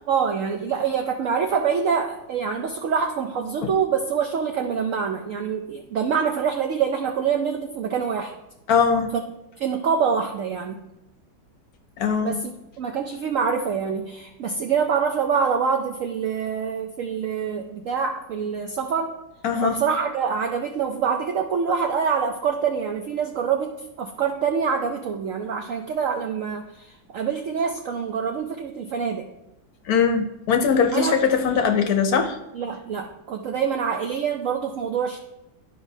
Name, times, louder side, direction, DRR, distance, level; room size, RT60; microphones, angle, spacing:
voice 1, 0.1-8.3 9.6-10.8 12.2-12.5 12.8-19.1 19.6-29.3 30.9-31.2 32.5-35.2, right 6 dB, 75° right, 4 dB, 0.7 m, -25 dB
voice 2, 8.7-9.1 12.0-12.4 19.4-19.8 29.9-32.4, left 6 dB, 65° left, 6 dB, 1.0 m, -21 dB
11.5 x 4.9 x 2.7 m, 0.93 s
omnidirectional pair, 1.9 m